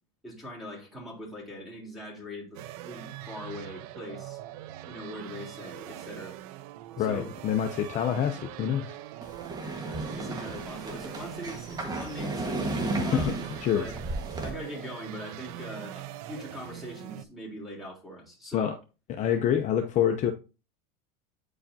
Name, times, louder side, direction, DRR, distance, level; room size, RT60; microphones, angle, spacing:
voice 1, 0.2-4.4 4.8-6.4 7.0-7.3 9.6-12.6 13.0-13.4 13.7-14.0 14.4-18.7, equal, ahead, 3.5 m, -41 dB
sound 1, 2.5-17.2, right 13 dB, 75° right, 0.6 m, -42 dB
voice 2, 7.0-8.9 13.0-13.4 13.6-13.9 18.5-18.8 19.2-20.3, left 9 dB, 40° left, 0.7 m, -26 dB
sound 2, 9.2-14.5, right 2 dB, 20° right, 1.5 m, -34 dB
8.7 x 4.8 x 2.7 m
supercardioid pair, 125°, 19 cm